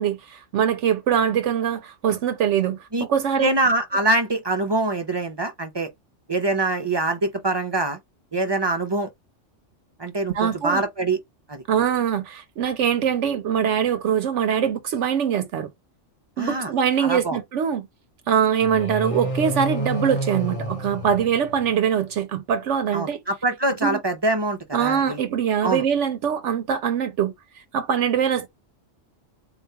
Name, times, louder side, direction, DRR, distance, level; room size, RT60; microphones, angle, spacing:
voice 1, 0.0-3.5 10.3-10.8 11.7-15.7 16.4-17.9 18.3-23.2 23.8-24.0 24.7-28.5, right 8 dB, 75° right, 0.9 m, -23 dB
voice 2, 3.4-5.9 6.3-8.0 8.3-9.1 10.0-11.2 11.5-11.6 16.4-16.7 17.0-17.4 22.9-25.2 25.6-25.8, right 2 dB, 35° right, 0.4 m, -24 dB
scary groan, 18.6-21.9, right 1 dB, 30° left, 0.8 m, -29 dB
3.9 x 2.3 x 2.7 m
omnidirectional pair, 1.3 m